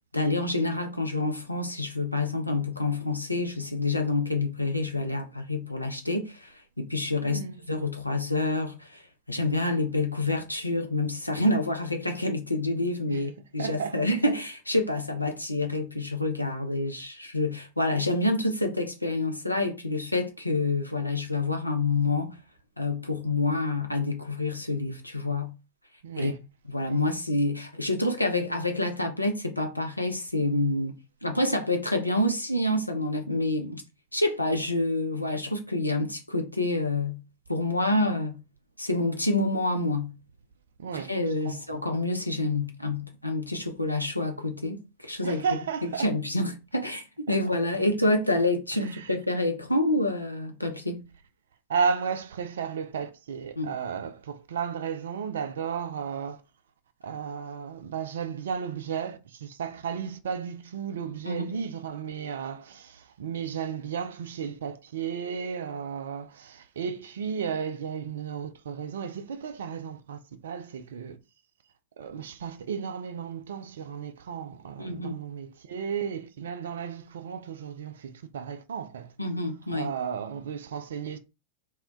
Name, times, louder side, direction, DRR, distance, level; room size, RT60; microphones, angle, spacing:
voice 1, 0.1-6.5 6.8-7.4 7.7-9.0 9.3-22.4 22.8-25.5 26.2-26.3 26.7-30.9 31.2-33.8 34.1-37.2 37.5-38.4 38.8-40.1 40.9-45.4 45.8-51.0 53.6-53.7 61.3-61.6 74.8-75.2 79.2-79.9, left 2 dB, 85° left, 0.5 m, -27 dB
voice 2, 7.2-7.6 13.1-13.3 13.6-14.0 26.0-26.4 26.8-27.0 40.8-41.1 41.4-41.6 45.2-46.1 47.3-47.4 48.9-49.1 51.7-56.4 57.0-71.2 72.0-79.1 79.7-81.2, right 7 dB, 65° right, 0.4 m, -34 dB
2.1 x 2.1 x 3.7 m
figure-of-eight pair, 90°, 0 cm